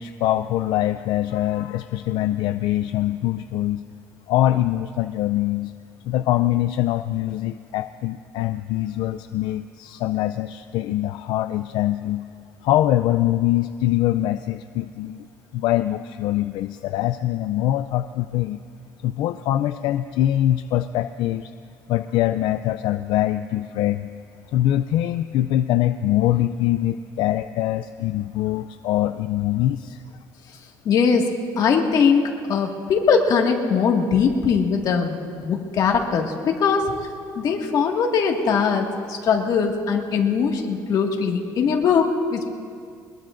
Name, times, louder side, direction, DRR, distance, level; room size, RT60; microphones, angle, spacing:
voice 1, 0.0-3.8 4.3-5.7 6.1-12.2 12.6-15.3 15.5-18.6 19.0-21.5 21.9-24.1 24.5-30.0, left 13 dB, 80° left, 10 dB, 0.4 m, -23 dB
voice 2, 30.9-31.3 31.6-36.9 37.4-42.5, left 6 dB, 55° left, 1 dB, 1.9 m, -21 dB
22.5 x 21.0 x 2.6 m, 2.2 s
cardioid pair, 130°, 8 cm